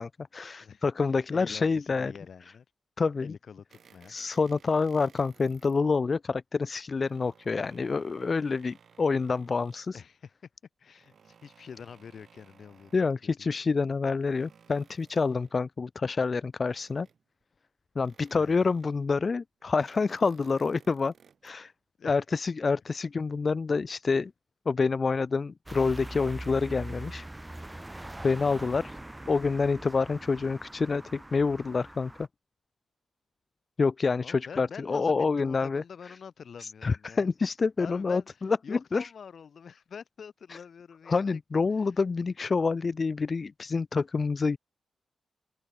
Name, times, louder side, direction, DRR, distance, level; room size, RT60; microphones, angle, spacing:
voice 1, 0.0-2.1 3.0-3.3 4.1-10.0 12.9-17.1 18.0-21.1 21.4-21.7 22.0-24.3 24.7-27.3 28.2-29.0 29.3-32.1 33.8-35.8 36.6-39.1 40.5-40.6 41.1-44.6, left 4 dB, 35° left, 0.4 m, -27 dB
voice 2, 1.3-2.6 3.2-4.2 9.9-10.3 10.8-13.5 18.3-18.7 22.0-22.2 34.2-37.3 37.8-41.6, left 6 dB, 55° left, 6.6 m, -46 dB
sound 1, 3.7-5.8 6.7-10.0 10.9-13.3 13.9-15.7 16.5-17.4 18.0-19.1 19.6-21.6, right 6 dB, 55° right, 2.8 m, -60 dB
sound 2, 25.7-32.3, right 1 dB, 10° right, 1.5 m, -42 dB
wide cardioid pair, 150°, 0 cm